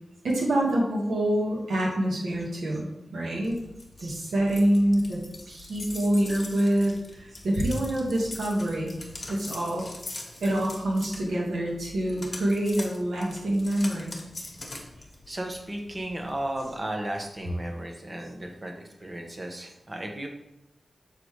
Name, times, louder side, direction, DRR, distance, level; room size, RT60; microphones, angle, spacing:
voice 1, 0.2-3.6 4.0-5.2 5.5-8.9 9.3-9.9 10.4-14.2, right 1 dB, 90° right, -2 dB, 1.7 m, -26 dB
sound 1, 3.4-16.7, left 2 dB, 30° left, 1.4 m, -43 dB
voice 2, 10.3-10.6 15.3-18.7 19.0-20.3, right 1 dB, 25° right, 2 dB, 1.1 m, -35 dB
6.6 x 3.9 x 4.8 m, 0.90 s
wide cardioid pair, 105°, 0 cm